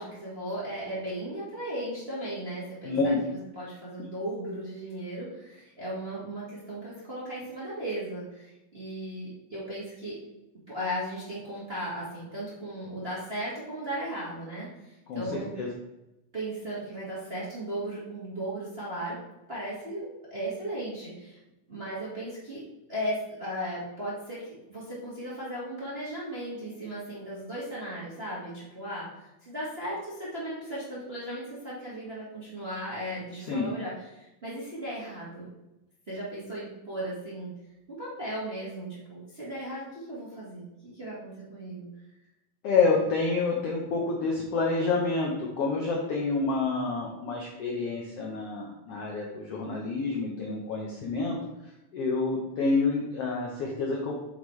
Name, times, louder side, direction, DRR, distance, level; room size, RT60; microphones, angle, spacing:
voice 1, 0.0-3.1 3.5-10.2 10.7-15.5 16.3-19.2 19.5-21.4 21.7-22.6 22.9-35.5 36.1-37.5 37.9-41.9, right 1 dB, 25° right, -8 dB, 1.4 m, -36 dB
voice 2, 2.8-3.2 15.1-15.7 33.5-33.7 42.6-51.4 51.9-54.3, left 4 dB, 70° left, -2 dB, 1.5 m, -28 dB
8.3 x 5.8 x 3.2 m, 0.95 s
omnidirectional pair, 3.8 m